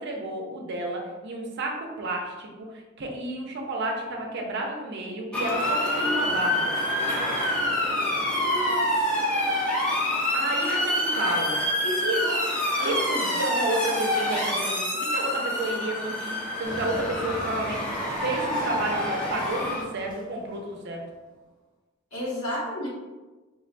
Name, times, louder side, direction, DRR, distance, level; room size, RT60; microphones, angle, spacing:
voice 1, 0.0-6.7 10.3-11.6 12.0-12.2 12.8-21.0, right 2 dB, 60° right, 1 dB, 0.5 m, -31 dB
Motor vehicle (road) / Siren, 5.3-19.8, left 1 dB, 5° left, 0.6 m, -27 dB
voice 2, 8.4-9.3 11.8-12.4 12.8-13.3 22.1-22.9, equal, 85° left, -7 dB, 1.2 m, -32 dB
Engine, 16.6-21.1, equal, 60° left, 0.8 m, -41 dB
3.7 x 2.1 x 2.5 m, 1.2 s
head